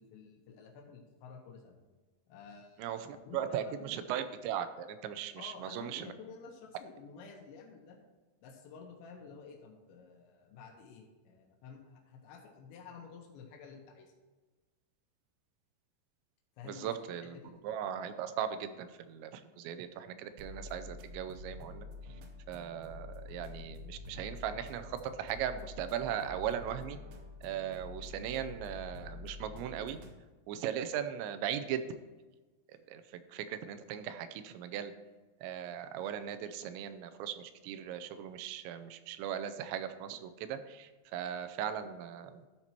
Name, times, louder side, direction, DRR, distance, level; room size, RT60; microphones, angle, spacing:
voice 1, 0.0-1.8 2.3-4.1 5.4-8.0 8.4-14.1 16.6-16.9 17.3-17.5, left 5 dB, 90° left, 1 dB, 3.3 m, -51 dB
voice 2, 2.8-6.1 16.6-17.4 17.6-21.8 22.5-27.0 27.4-30.0 30.5-31.8 32.9-33.0 33.3-34.9 35.4-42.5, right 9 dB, 90° right, 10 dB, 2.9 m, -38 dB
sound 1, 20.4-30.2, left 3 dB, 75° right, 2.5 m, -47 dB
12.5 x 4.4 x 4.3 m, 1.2 s
omnidirectional pair, 5.1 m